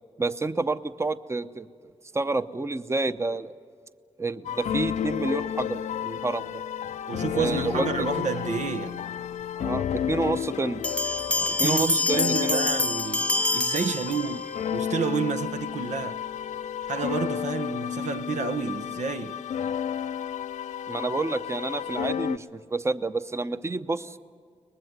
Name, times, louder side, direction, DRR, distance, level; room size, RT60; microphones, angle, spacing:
voice 1, 0.2-1.7 2.1-3.5 4.2-6.6 7.3-8.1 9.6-10.8 11.6-12.7 20.9-24.2, right 3 dB, 25° right, 0.8 m, -29 dB
sound 1, 4.4-22.4, left 9 dB, 80° left, 0.6 m, -32 dB
voice 2, 7.1-9.0 11.3-14.5 14.7-16.2 16.9-19.4, right 6 dB, 80° right, 1.0 m, -30 dB
Bell, 10.8-14.6, left 2 dB, 10° left, 0.5 m, -26 dB
23.5 x 20.0 x 9.5 m
cardioid pair, 70°, 12 cm